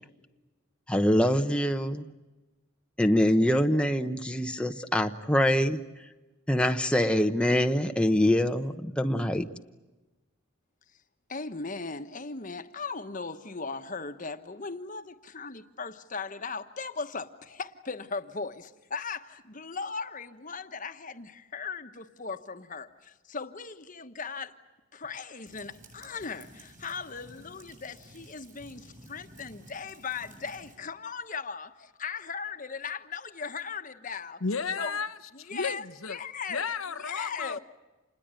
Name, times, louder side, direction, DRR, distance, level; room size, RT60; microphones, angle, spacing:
voice 1, 0.9-2.1 3.0-5.8 6.5-9.5, left 1 dB, 5° left, 0.8 m, -24 dB
voice 2, 11.3-24.5 24.9-34.4 34.8-35.0 35.3-36.7 37.0-37.6, left 5 dB, 40° left, 1.2 m, -38 dB
sound 1, 25.4-30.8, right 1 dB, 40° right, 7.8 m, -53 dB
voice 3, 34.4-36.2 36.5-37.6, left 5 dB, 85° left, 1.0 m, -33 dB
27.5 x 20.5 x 9.0 m
head